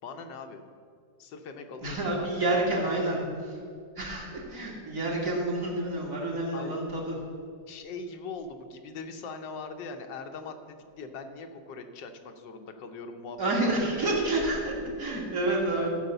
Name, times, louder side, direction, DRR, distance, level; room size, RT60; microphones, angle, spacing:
voice 1, 0.0-0.6 1.2-3.2 6.5-6.8 7.7-10.5 11.0-14.3 15.8-15.9, left 4 dB, 90° left, 6 dB, 1.5 m, -41 dB
voice 2, 1.8-3.2 4.0-7.2 13.4-15.9, right 2 dB, 50° right, -3 dB, 2.4 m, -29 dB
14.0 x 5.0 x 6.7 m, 2.2 s
omnidirectional pair, 1.9 m